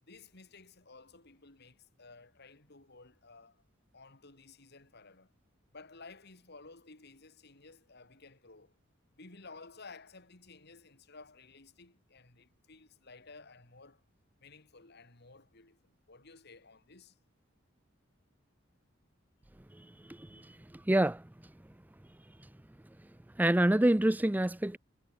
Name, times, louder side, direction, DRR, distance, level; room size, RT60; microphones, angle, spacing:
voice 1, 0.0-3.6 3.9-5.3 5.7-8.8 9.1-14.0 14.4-17.2 20.3-20.6, left 3 dB, 55° left, 3.0 m, -55 dB
voice 2, 19.7-21.3 23.4-24.8, right 1 dB, 10° right, 0.5 m, -28 dB
head